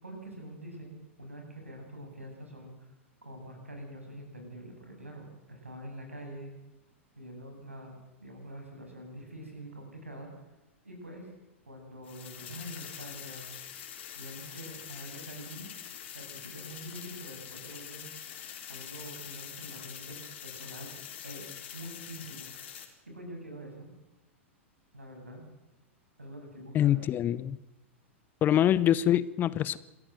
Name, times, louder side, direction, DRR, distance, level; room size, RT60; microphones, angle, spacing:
voice 1, 0.0-2.9 3.2-6.5 7.2-10.3 10.8-11.3 11.7-13.5 14.1-15.7 16.1-18.1 18.7-20.9 21.2-21.4 21.7-22.5 23.1-23.9 24.9-25.5 26.2-27.1, right 1 dB, 85° right, 2 dB, 7.4 m, -45 dB
sound 1, 12.0-22.8, left 9 dB, 60° left, 4.0 m, -44 dB
voice 2, 26.7-27.6 28.4-29.8, left 11 dB, 30° left, 19 dB, 0.8 m, -25 dB
27.0 x 14.0 x 7.7 m, 1.0 s
figure-of-eight pair, 95°, 7 cm